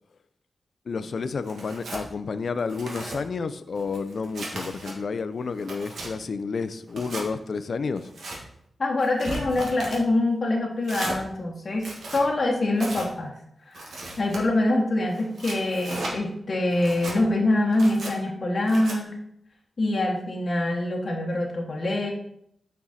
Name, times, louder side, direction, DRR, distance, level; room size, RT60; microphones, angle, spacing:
voice 1, 0.9-8.1, left 4 dB, 65° left, 13 dB, 0.4 m, -30 dB
Tearing, 1.5-2.0 2.6-3.2 3.8-4.9 5.4-6.1 6.9-7.3 8.0-8.4 9.0-10.0 10.8-11.2 11.7-12.2 12.8-13.1 13.7-14.4 15.1-16.1 16.7-17.2 17.7-18.1 18.7-19.0, right 2 dB, 85° right, 1.6 m, -36 dB
voice 2, 8.8-13.3 13.7-19.2 19.8-22.1, left 2 dB, 45° left, -1 dB, 1.0 m, -25 dB
6.1 x 4.6 x 4.2 m, 0.74 s
wide cardioid pair, 80°, 0 cm